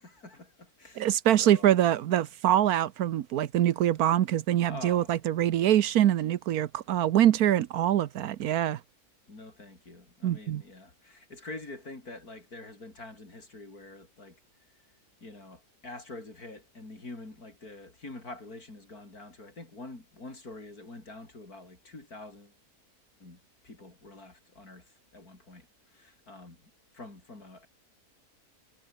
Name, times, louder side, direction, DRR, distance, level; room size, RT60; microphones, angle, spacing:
voice 1, 0.0-1.7 4.7-5.2 9.3-14.4 15.2-22.6 23.2-26.6 26.9-27.7, left 2 dB, 80° left, 6.0 m, -46 dB
voice 2, 1.0-8.8 10.2-10.6, right 11 dB, 85° right, 1.3 m, -24 dB
omnidirectional pair, 1.6 m